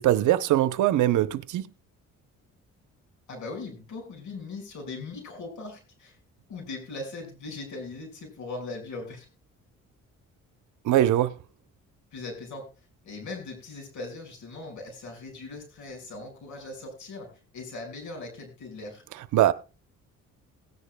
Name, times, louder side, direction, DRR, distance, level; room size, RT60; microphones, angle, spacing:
voice 1, 0.0-1.7 10.8-11.4 19.3-19.5, right 13 dB, 80° right, 0.8 m, -22 dB
voice 2, 3.3-6.2 6.5-9.3 12.1-12.7 13.0-17.3 17.5-19.0, left 3 dB, 75° left, 5.5 m, -39 dB
18.5 x 10.0 x 2.2 m
cardioid pair, 90°, 30 cm